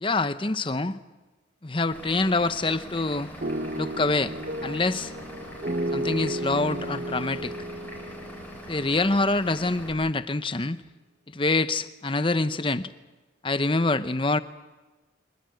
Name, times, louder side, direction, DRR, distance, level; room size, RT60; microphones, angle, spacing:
voice 1, 0.0-0.9 1.6-3.3 3.8-4.3 4.6-5.1 5.9-7.5 8.7-10.8 11.3-12.9 13.4-14.4, left 2 dB, 25° left, 12 dB, 0.8 m, -25 dB
Vehicle / Engine, 1.9-9.9, equal, 10° left, 5.2 m, -42 dB
sound 1, 3.4-9.4, right 1 dB, 45° right, 1.0 m, -33 dB
25.0 x 20.0 x 7.8 m, 1.2 s
head